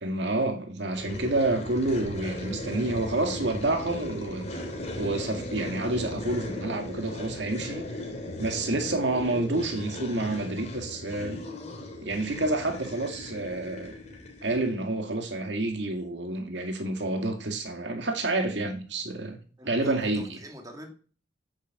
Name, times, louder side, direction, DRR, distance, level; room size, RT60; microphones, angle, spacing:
voice 1, 0.0-4.5 5.0-7.8 8.4-11.4 12.0-13.9 14.4-19.4 19.7-20.4, right 2 dB, 70° right, 2.1 m, -29 dB
sound 1, 0.9-14.8, left 1 dB, 40° left, 3.2 m, -37 dB
voice 2, 19.6-20.9, equal, 20° right, 2.4 m, -45 dB
8.7 x 8.1 x 7.5 m
head